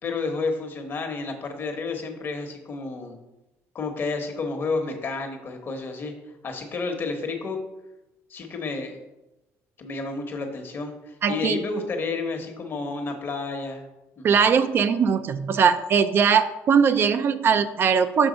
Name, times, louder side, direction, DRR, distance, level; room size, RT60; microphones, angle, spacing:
voice 1, 0.0-3.2 3.7-6.1 6.4-7.6 8.3-9.0 9.8-13.8 14.2-14.4, left 3 dB, 45° left, 4 dB, 1.0 m, -30 dB
voice 2, 11.2-11.6 14.2-18.3, right 6 dB, 45° right, 11 dB, 0.3 m, -20 dB
6.2 x 3.4 x 5.1 m, 0.99 s
cardioid pair, 110°, 5 cm